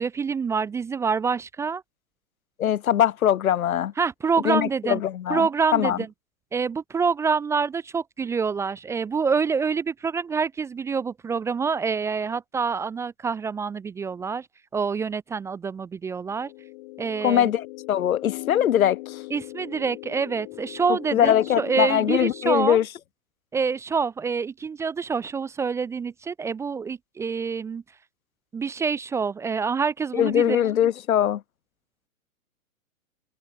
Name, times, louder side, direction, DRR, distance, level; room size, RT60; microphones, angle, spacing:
voice 1, 0.0-1.8 4.0-5.0 5.3-6.1 6.5-14.5 14.7-16.5 17.0-17.5 19.3-22.8 23.5-27.8 28.5-30.6, right 5 dB, 5° right, 0.7 m, -26 dB
voice 2, 2.6-3.9 4.4-6.0 17.2-19.0 21.1-22.8 30.1-31.4, left 10 dB, 70° left, 0.9 m, -22 dB
sound 1, 16.3-22.9, left 23 dB, 35° left, 2.3 m, -39 dB
hypercardioid pair, 135°, 44 cm